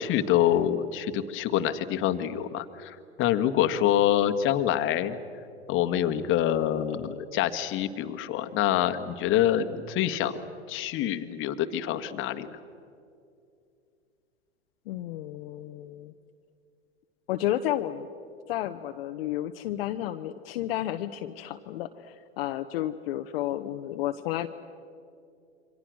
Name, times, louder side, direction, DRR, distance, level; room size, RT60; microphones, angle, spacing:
voice 1, 0.0-5.2 5.7-10.4 10.7-12.5, left 11 dB, 40° left, 9 dB, 1.7 m, -26 dB
voice 2, 14.9-16.1 17.3-18.1 18.5-24.5, left 13 dB, 60° left, 6 dB, 1.1 m, -32 dB
28.5 x 24.5 x 6.4 m, 2.5 s
hypercardioid pair, 105°, 33 cm